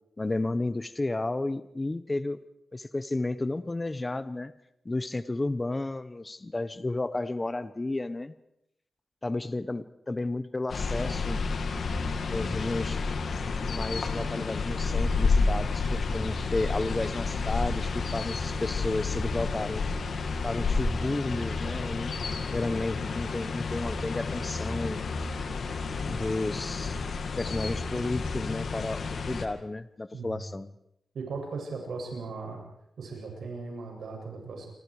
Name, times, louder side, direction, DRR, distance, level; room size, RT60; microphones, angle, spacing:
voice 1, 0.2-2.4 2.7-4.5 4.8-8.3 9.2-11.4 12.3-13.0 13.4-19.8 20.4-22.1 22.5-25.0 26.0-27.0 27.4-30.7, left 2 dB, 20° left, 13 dB, 1.0 m, -32 dB
sound 1, 10.7-29.5, left 4 dB, 65° left, 2.3 m, -30 dB
voice 2, 31.1-32.6 33.0-34.7, right 4 dB, 85° right, 1 dB, 7.9 m, -37 dB
28.0 x 24.5 x 5.0 m, 0.77 s
wide cardioid pair, 110°, 0 cm